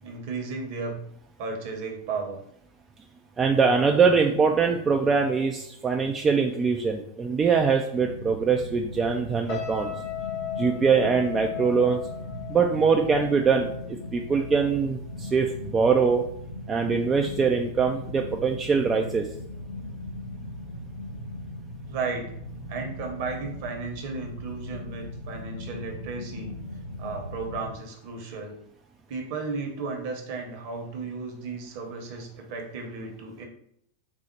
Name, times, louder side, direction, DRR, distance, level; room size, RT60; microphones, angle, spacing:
voice 1, 0.0-1.0 1.4-2.4 21.8-22.4 22.7-26.5 27.0-28.6 29.1-33.5, right 4 dB, 50° right, 2 dB, 0.9 m, -34 dB
voice 2, 3.4-9.9 10.6-12.0 12.5-13.7 14.1-16.2 16.7-19.3, right 5 dB, 20° right, 2 dB, 0.3 m, -23 dB
sound 1, 8.0-27.7, left 1 dB, 75° left, 1.0 m, -38 dB
sound 2, 9.5-14.8 15.1-15.4, left 10 dB, 45° left, 0.7 m, -37 dB
4.2 x 2.0 x 4.5 m, 0.70 s
figure-of-eight pair, 90°, 0 cm